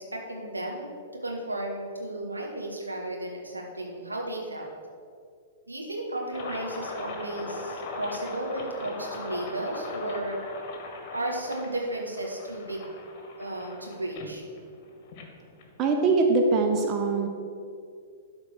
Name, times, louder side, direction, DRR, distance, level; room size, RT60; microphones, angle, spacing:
voice 1, 0.0-4.7 5.7-10.4 11.1-12.9 13.4-14.4, right 1 dB, 80° right, 0 dB, 1.8 m, -34 dB
sound 1, 6.3-16.1, left 3 dB, 40° left, 1.6 m, -40 dB
voice 2, 15.8-17.3, right 3 dB, 30° right, 3 dB, 0.9 m, -22 dB
12.0 x 4.4 x 6.3 m, 2.3 s
figure-of-eight pair, 105°, 0 cm